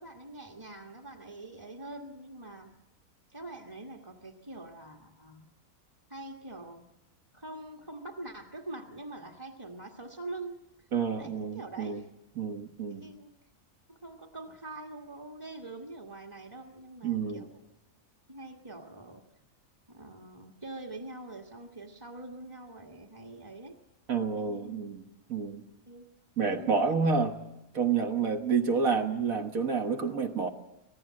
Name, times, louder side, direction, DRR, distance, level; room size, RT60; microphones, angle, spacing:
voice 1, 0.0-2.7 3.3-5.5 6.1-6.9 7.3-10.9 11.2-12.1 12.9-13.3 13.9-17.6 18.3-19.2 19.9-23.8 24.4-24.8 25.9-26.1 26.4-27.0, right 2 dB, 15° right, 0 dB, 1.5 m, -44 dB
voice 2, 10.9-12.0 12.4-13.1 17.0-17.5 24.1-25.0 25.3-25.6 26.4-27.3 27.7-30.5, right 5 dB, 70° right, 4 dB, 1.8 m, -29 dB
26.0 x 18.5 x 7.6 m, 0.91 s
omnidirectional pair, 1.5 m